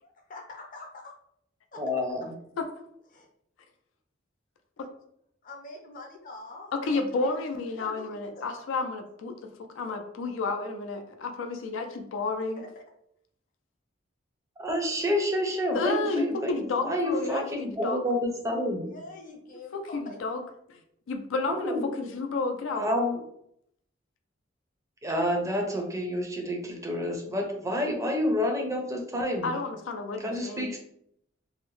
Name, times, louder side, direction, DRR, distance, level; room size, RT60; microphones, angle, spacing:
voice 1, 0.3-1.1 1.7-1.8 3.1-3.3 5.4-7.4 7.8-8.6 12.6-12.7 18.9-20.2, left 2 dB, 45° left, 2 dB, 0.6 m, -45 dB
voice 2, 1.8-2.4 14.6-18.9 21.4-21.8 22.8-23.2 25.0-29.5 30.2-30.8, left 1 dB, 15° right, 2 dB, 0.4 m, -29 dB
voice 3, 6.7-12.6 15.7-18.0 19.7-20.4 20.7-20.8 21.1-22.9 29.4-30.8, left 3 dB, 90° left, 5 dB, 0.4 m, -31 dB
2.7 x 2.0 x 3.0 m, 0.72 s
head